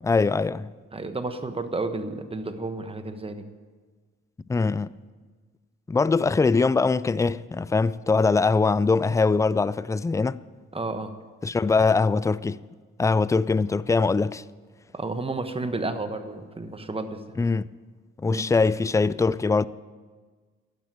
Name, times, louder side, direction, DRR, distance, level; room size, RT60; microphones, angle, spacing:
voice 1, 0.0-0.7 4.5-4.9 5.9-10.4 11.4-12.6 13.0-14.4 17.4-17.7 18.2-19.7, left 4 dB, 10° left, 0.3 m, -22 dB
voice 2, 0.9-3.4 10.7-11.1 14.9-17.2 18.2-18.4, right 3 dB, 20° right, 1.2 m, -31 dB
11.5 x 9.4 x 8.9 m
cardioid pair, 90°, 30 cm